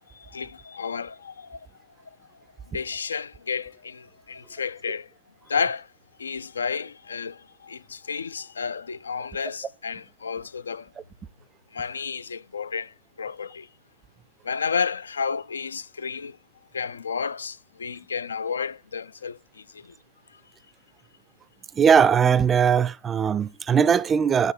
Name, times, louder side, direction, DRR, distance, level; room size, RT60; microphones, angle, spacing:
voice 1, 0.1-1.7 2.1-2.2 2.7-5.1 5.5-5.9 6.2-10.9 11.7-13.7 14.4-16.4 16.7-19.9, left 6 dB, 90° left, 0.3 m, -31 dB
voice 2, 21.8-24.5, right 7 dB, 15° right, 0.3 m, -19 dB
9.1 x 3.3 x 4.4 m
hypercardioid pair, 135°, 0 cm